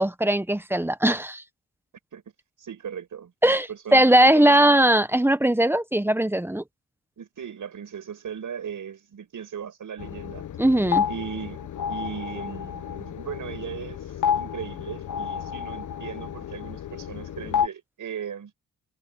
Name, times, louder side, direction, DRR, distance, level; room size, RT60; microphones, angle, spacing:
voice 1, 0.0-1.4 3.4-6.6 10.6-11.1, right 1 dB, 5° right, 1.1 m, -20 dB
voice 2, 2.6-4.8 7.2-10.4 11.1-18.5, right 8 dB, 60° right, 6.2 m, -38 dB
sound 1, 10.0-17.7, left 8 dB, 60° left, 0.9 m, -30 dB
cardioid pair, 105°, 34 cm